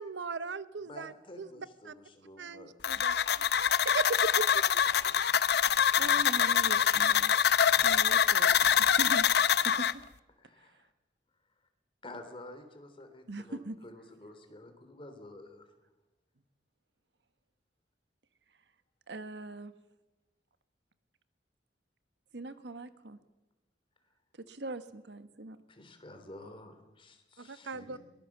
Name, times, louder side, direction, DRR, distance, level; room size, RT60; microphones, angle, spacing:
voice 1, 0.0-1.9 2.4-3.1 3.8-4.8 27.4-28.0, right 4 dB, 90° right, 15 dB, 0.8 m, -38 dB
voice 2, 0.8-3.4 10.4-10.9 12.0-15.7 25.7-28.0, left 1 dB, 30° left, 7 dB, 3.2 m, -50 dB
sound 1, 2.8-9.9, left 8 dB, 65° left, 0.7 m, -25 dB
voice 3, 5.6-7.3 7.8-9.3 9.6-9.9 10.6-10.9 13.3-13.8 19.1-19.7 22.3-23.2 24.4-25.6, right 2 dB, 70° right, 11 dB, 1.4 m, -41 dB
22.5 x 19.5 x 7.3 m, 1.0 s
head